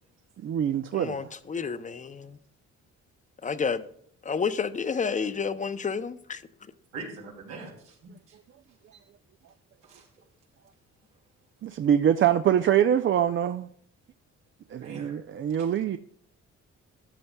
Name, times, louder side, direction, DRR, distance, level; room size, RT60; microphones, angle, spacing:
voice 1, 0.4-1.2 11.6-13.7 14.7-16.0, right 9 dB, 40° right, 0.4 m, -24 dB
voice 2, 0.9-2.4 3.4-3.9 4.2-6.4, left 5 dB, 25° left, 0.5 m, -30 dB
voice 3, 6.9-8.4 9.8-10.1 14.8-15.2 15.5-15.7, right 3 dB, 90° right, 2.8 m, -43 dB
13.5 x 8.3 x 2.2 m
cardioid pair, 90°, 30 cm